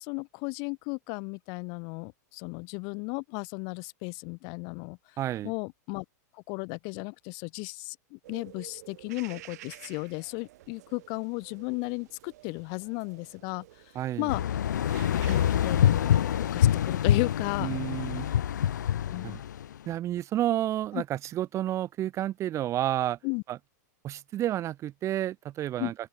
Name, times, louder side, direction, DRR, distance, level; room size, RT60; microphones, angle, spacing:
voice 1, 0.0-5.0 5.4-6.0 6.3-13.8 14.2-14.4 15.1-17.8 18.9-19.4 20.9-21.0 23.2-23.4 25.8-25.9, left 36 dB, 45° left, 0.7 m, -35 dB
voice 2, 5.2-5.5 13.9-14.3 17.6-18.3 19.2-19.4 19.9-23.2 23.5-23.6 24.0-25.9, right 12 dB, 30° right, 0.7 m, -30 dB
sound 1, 8.2-16.6, right 16 dB, 65° right, 4.2 m, -51 dB
sound 2, 14.3-19.7, left 10 dB, 85° left, 0.4 m, -26 dB
open air
hypercardioid pair, 110°, 10 cm